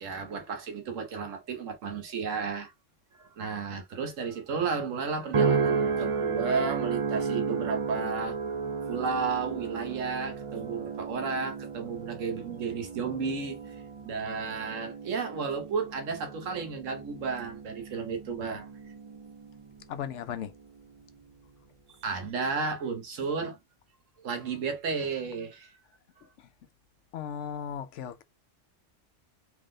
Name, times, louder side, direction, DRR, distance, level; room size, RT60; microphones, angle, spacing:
voice 1, 0.0-2.7 3.2-8.4 8.9-18.7 22.0-23.6 24.2-25.7, right 5 dB, 90° right, 1.3 m, -33 dB
sound 1, 5.3-19.8 20.3-20.8, right 5 dB, 50° right, 0.4 m, -33 dB
voice 2, 19.9-20.5 27.1-28.2, left 8 dB, 75° left, 0.9 m, -36 dB
3.8 x 3.1 x 3.7 m
omnidirectional pair, 1.3 m